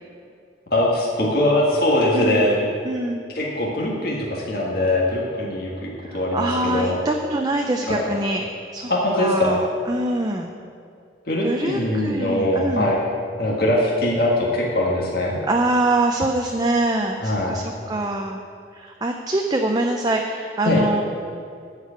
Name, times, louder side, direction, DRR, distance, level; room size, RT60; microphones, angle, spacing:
voice 1, 0.7-2.7 3.3-7.0 7.9-8.1 8.9-9.6 11.3-13.0 13.4-15.4 17.2-17.6 20.6-20.8, left 1 dB, 55° left, -4 dB, 1.6 m, -21 dB
voice 2, 2.1-2.5 2.8-3.3 6.1-8.4 8.7-8.9 9.2-10.5 11.4-12.9 15.5-18.4 18.7-21.0, right 2 dB, 20° right, 2 dB, 0.5 m, -24 dB
12.5 x 4.8 x 8.1 m, 2.4 s
head